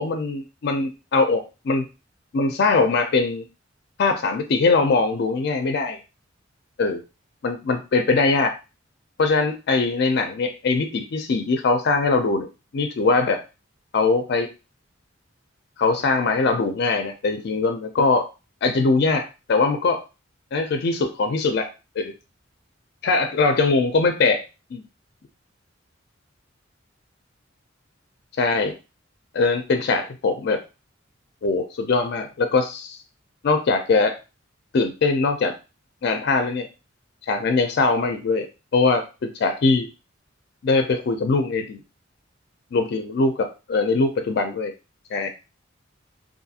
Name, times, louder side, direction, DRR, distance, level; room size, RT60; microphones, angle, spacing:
voice 1, 0.0-1.8 2.3-3.5 4.0-6.0 6.8-7.0 7.4-8.5 9.2-12.5 12.7-13.4 13.9-14.5 15.8-18.3 18.6-20.0 20.5-21.7 22.0-22.1 23.0-24.4 24.7-24.8 28.4-28.8 29.3-30.6 31.4-33.0 33.4-34.2 34.7-35.6 36.0-36.7 37.3-38.5 38.7-39.9 40.6-41.8 42.7-44.7 45.1-45.3, left 3 dB, 55° left, 7 dB, 0.4 m, -21 dB
2.5 x 2.4 x 2.7 m, 0.29 s
head